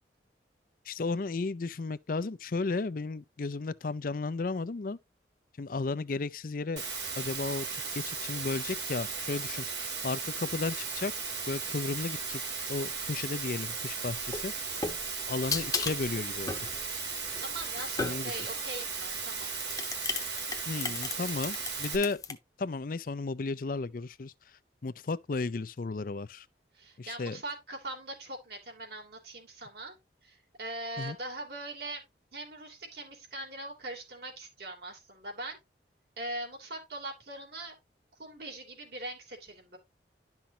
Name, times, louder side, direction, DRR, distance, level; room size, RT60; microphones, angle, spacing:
voice 1, 0.9-5.0 5.6-6.8 7.2-11.1 11.5-12.4 12.7-14.5 15.3-16.5 18.0-18.4 20.7-24.3 24.8-26.5 27.0-27.4 31.0-31.2, left 3 dB, 50° left, 0.5 m, -34 dB
Water, 6.8-22.0, right 5 dB, 85° right, 3.9 m, -36 dB
sound 1, 14.2-18.5 19.3-22.3, left 4 dB, 20° left, 1.0 m, -36 dB
voice 2, 17.4-19.5 26.7-30.0 30.2-32.0 32.3-35.6 36.2-37.7 38.2-39.8, right 2 dB, 65° right, 3.0 m, -41 dB
11.5 x 5.9 x 2.8 m
head